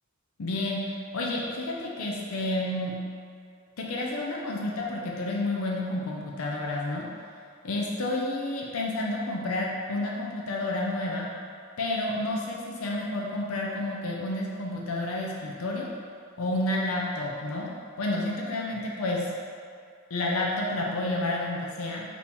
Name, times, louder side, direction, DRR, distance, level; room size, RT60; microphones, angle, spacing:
voice 1, 0.4-0.8 1.1-2.9 3.8-7.0 7.6-11.3 11.8-15.9 16.4-17.7 18.0-19.3 20.1-22.0, left 2 dB, 90° left, -2 dB, 0.5 m, -30 dB
4.2 x 2.9 x 3.4 m, 2.3 s
head